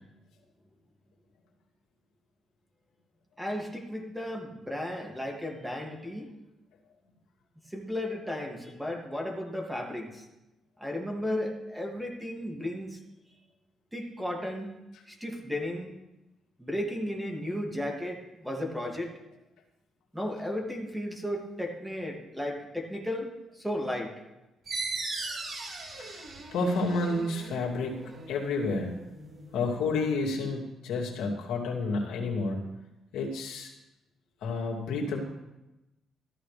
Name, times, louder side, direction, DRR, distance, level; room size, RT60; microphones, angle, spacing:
voice 1, 3.4-6.3 7.7-10.3 10.8-13.0 13.9-14.7 15.1-15.9 16.6-19.1 20.1-24.1, left 1 dB, 5° right, 0 dB, 2.3 m, -34 dB
sound 1, 24.7-29.9, right 3 dB, 50° right, 3.1 m, -39 dB
voice 2, 26.5-28.0 28.3-29.0 29.5-32.6 33.1-33.7 34.4-35.2, left 3 dB, 85° left, -2 dB, 2.5 m, -30 dB
14.0 x 12.5 x 3.4 m, 0.96 s
cardioid pair, 90°, 0 cm